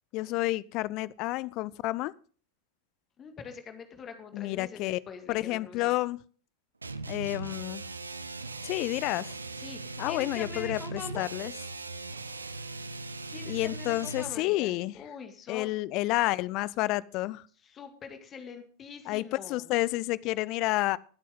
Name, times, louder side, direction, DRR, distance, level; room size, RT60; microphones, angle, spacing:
voice 1, 0.1-2.1 4.3-5.0 5.3-6.2 7.1-7.8 8.6-9.4 10.0-11.5 13.5-14.9 15.5-17.4 19.1-21.0, left 19 dB, 40° left, 0.4 m, -30 dB
voice 2, 3.2-6.0 9.6-11.3 13.3-15.7 17.6-19.7, left 6 dB, 25° left, 2.1 m, -44 dB
sound 1, 6.8-14.4, right 3 dB, 80° right, 0.7 m, -39 dB
21.0 x 8.4 x 3.8 m
figure-of-eight pair, 90°, 0 cm